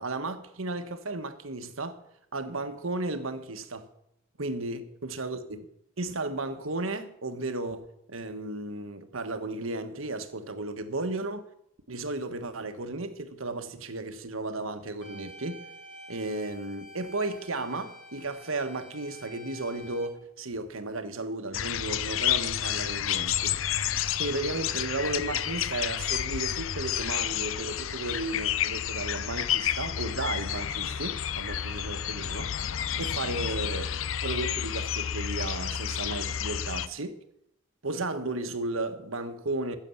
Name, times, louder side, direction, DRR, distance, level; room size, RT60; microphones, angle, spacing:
voice 1, 0.0-2.0 2.3-3.9 4.4-5.7 6.0-11.5 11.9-15.6 16.1-23.6 24.2-32.7 33.0-33.9 34.2-37.2 37.8-39.8, right 2 dB, 85° right, 1.4 m, -34 dB
sound 1, 15.0-20.1, equal, 40° left, 2.9 m, -48 dB
sound 2, 21.5-36.9, left 10 dB, 75° left, 0.6 m, -30 dB
15.0 x 7.1 x 7.2 m
head